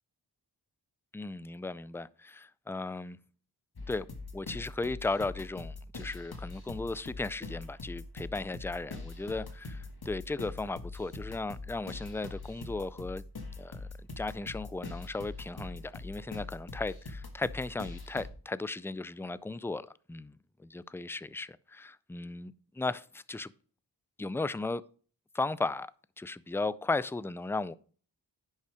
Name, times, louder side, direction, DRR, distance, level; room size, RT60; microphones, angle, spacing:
voice 1, 1.1-3.2 3.9-4.1 4.3-13.2 13.6-13.9 14.2-20.3 20.6-23.5 24.2-24.8 25.3-25.9 26.2-27.7, left 3 dB, 5° left, 0.4 m, -36 dB
sound 1, 3.8-18.3, left 3 dB, 60° left, 1.7 m, -43 dB
10.5 x 5.7 x 5.0 m
wide cardioid pair, 55°, 43 cm